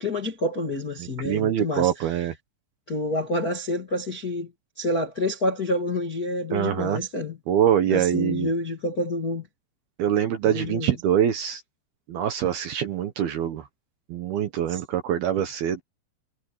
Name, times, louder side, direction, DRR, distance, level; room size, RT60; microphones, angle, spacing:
voice 1, 0.0-1.9 2.9-4.5 4.8-7.4 7.9-9.4 10.5-10.9 14.7-14.8, left 1 dB, 40° left, 1.3 m, -28 dB
voice 2, 1.0-2.3 6.5-7.0 7.5-8.5 10.0-11.6 12.1-13.7 14.1-15.8, right 10 dB, 65° right, 2.7 m, -24 dB
omnidirectional pair, 5.7 m